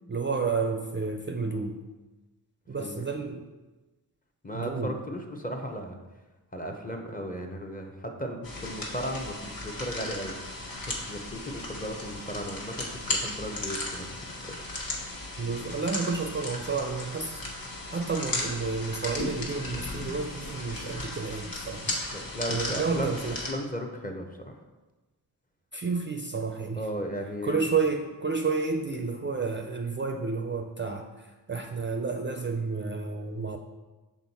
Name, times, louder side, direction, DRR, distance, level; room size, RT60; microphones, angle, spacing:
voice 1, 0.1-1.8 2.7-3.5 4.5-5.0 15.4-17.4 17.9-22.0 22.5-23.4 25.7-26.8 27.4-33.6, right 4 dB, 30° right, 4 dB, 0.4 m, -30 dB
voice 2, 4.4-6.0 6.5-10.3 10.9-14.9 22.1-23.2 23.5-24.6 26.8-27.7, equal, 20° left, 3 dB, 0.7 m, -36 dB
sound 1, 8.4-23.5, left 2 dB, 60° left, 1.3 m, -36 dB
6.1 x 3.9 x 4.1 m, 1.2 s
wide cardioid pair, 100°, 39 cm